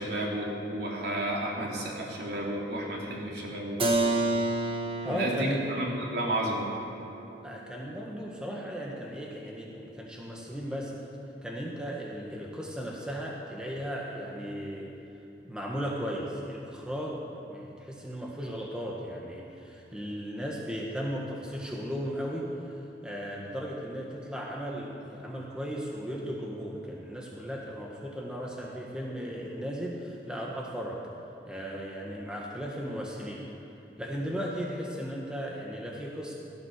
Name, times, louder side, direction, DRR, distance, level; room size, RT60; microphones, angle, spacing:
voice 1, 0.0-3.8 5.0-5.9 6.1-6.7, right 1 dB, 70° right, -3 dB, 3.2 m, -32 dB
Keyboard (musical), 3.8-9.4, right 2 dB, 30° right, 1.3 m, -32 dB
voice 2, 5.0-5.6 7.4-10.9 11.4-14.9 15.4-22.5 23.0-31.0 31.5-33.4 34.0-36.3, equal, 5° right, -3 dB, 1.6 m, -36 dB
17.0 x 12.5 x 6.7 m, 2.8 s
head